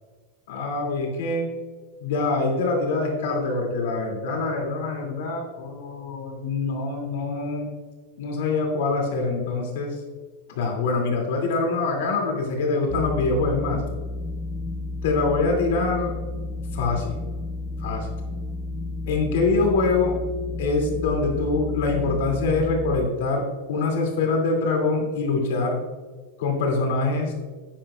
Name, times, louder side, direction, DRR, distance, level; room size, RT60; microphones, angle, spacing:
voice 1, 0.5-1.5 2.0-7.7 8.2-10.0 10.5-13.8 15.0-16.1 16.7-17.2 17.8-18.1 19.1-20.2 20.6-23.4 23.7-25.8 26.4-27.3, left 3 dB, 75° left, 1 dB, 2.6 m, -24 dB
sound 1, 12.9-23.1, left 2 dB, 15° left, 0.5 m, -32 dB
10.5 x 8.9 x 2.4 m, 1.4 s
supercardioid pair, 150°, 0 cm